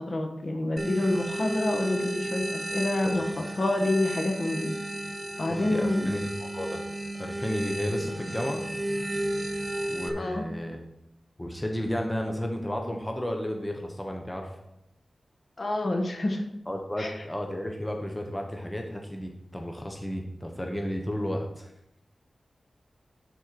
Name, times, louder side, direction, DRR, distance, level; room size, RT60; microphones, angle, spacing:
voice 1, 0.0-4.7 5.4-6.1 10.1-10.4 15.6-16.4 17.0-17.2, left 2 dB, 45° left, 3 dB, 1.3 m, -28 dB
sound 1, 0.8-10.1, right 1 dB, 15° right, 0.9 m, -33 dB
voice 2, 5.5-6.8 7.2-8.6 9.9-10.8 11.4-14.5 16.7-21.7, equal, 15° left, 2 dB, 1.1 m, -33 dB
11.5 x 4.5 x 4.6 m, 0.83 s
wide cardioid pair, 105°, 0 cm